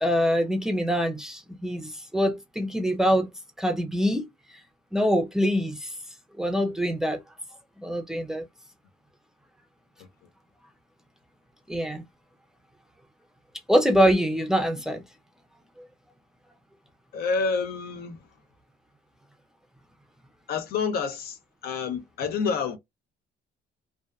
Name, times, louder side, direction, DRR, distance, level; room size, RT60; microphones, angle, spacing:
voice 1, 0.0-3.3 3.6-4.3 4.9-5.9 6.4-7.2 7.8-8.4 11.7-12.0 13.7-15.0, equal, 5° right, 0.5 m, -24 dB
voice 2, 17.1-18.2 20.5-22.8, left 5 dB, 65° left, 0.6 m, -28 dB
2.5 x 2.2 x 2.2 m
cardioid pair, 110°, 17 cm